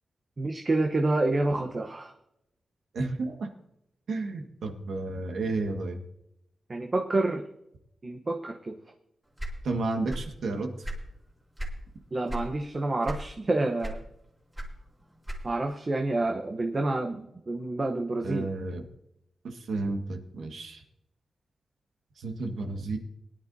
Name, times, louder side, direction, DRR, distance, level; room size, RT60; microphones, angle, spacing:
voice 1, 0.4-2.1 6.7-7.5 8.0-8.8 12.1-14.0 15.4-18.5, right 2 dB, 35° right, 3 dB, 1.0 m, -28 dB
voice 2, 2.9-3.5 4.1-6.0 9.6-10.7 18.2-18.9 19.4-20.8 22.2-23.0, right 3 dB, 80° right, 4 dB, 1.7 m, -32 dB
sound 1, 9.4-10.4 10.7-11.8 12.3-12.5 13.0-13.5 13.8-15.7, right 1 dB, 20° right, 2.6 m, -36 dB
21.5 x 10.5 x 2.8 m, 0.83 s
wide cardioid pair, 115°, 0 cm